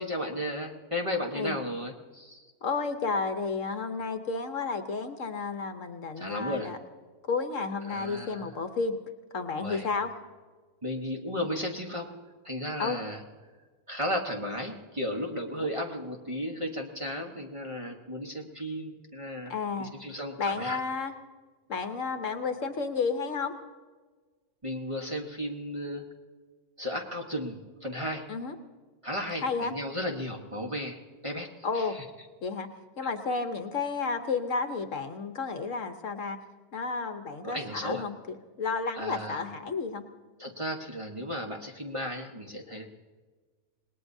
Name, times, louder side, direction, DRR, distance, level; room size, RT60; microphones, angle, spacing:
voice 1, 0.0-2.5 6.2-6.7 7.9-8.5 9.6-9.9 10.8-12.1 12.4-13.2 13.9-20.8 24.6-26.0 26.8-28.3 29.0-31.5 31.7-32.0 33.0-33.1 37.4-38.0 38.9-39.4 40.4-42.8, equal, 25° right, 1 dB, 1.1 m, -34 dB
voice 2, 2.6-6.8 7.3-9.0 9.3-10.1 12.8-13.0 15.5-15.7 19.4-19.9 20.4-21.1 21.7-23.5 28.3-28.6 29.4-29.7 31.6-32.0 32.4-32.7 33.0-36.4 36.7-38.2 38.6-40.0, left 4 dB, 60° left, 7 dB, 1.2 m, -31 dB
26.5 x 19.5 x 2.7 m, 1.4 s
omnidirectional pair, 1.6 m